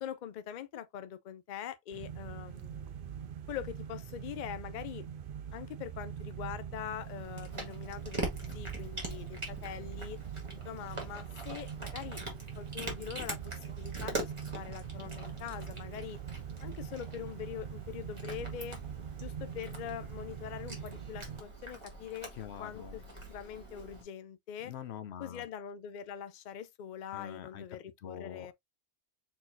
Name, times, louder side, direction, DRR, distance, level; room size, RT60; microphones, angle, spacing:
voice 1, 0.0-2.9 3.5-5.1 5.5-10.2 10.6-12.2 12.6-16.2 16.6-18.8 19.2-22.3 22.6-23.0 23.3-24.7 25.2-28.5, left 9 dB, 55° left, 0.6 m, -43 dB
sound 1, 1.9-21.4, right 8 dB, 65° right, 0.7 m, -43 dB
Cat, 6.9-24.0, right 2 dB, 30° right, 1.7 m, -43 dB
voice 2, 22.3-23.0 24.6-25.5 27.1-27.6 28.0-28.5, left 8 dB, 85° left, 0.9 m, -44 dB
4.2 x 4.1 x 2.6 m
omnidirectional pair, 1.1 m